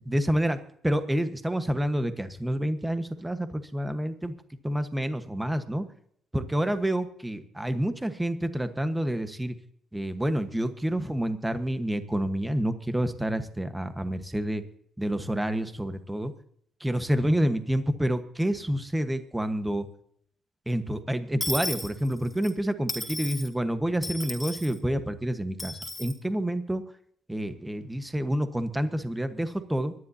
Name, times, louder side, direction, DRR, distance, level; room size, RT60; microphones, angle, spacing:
voice 1, 0.1-0.6 0.8-4.3 4.6-5.8 6.3-9.5 9.9-14.6 15.0-16.3 16.8-19.9 20.7-26.8 27.3-29.9, right 1 dB, 10° right, 9 dB, 1.3 m, -28 dB
Dishes pots and pans / Coin (dropping), 21.4-22.5 22.9-23.5 24.0-24.7 25.6-26.1, left 1 dB, 10° left, 2.5 m, -34 dB
25.0 x 11.0 x 2.8 m, 0.68 s
cardioid pair, 90°, 0 cm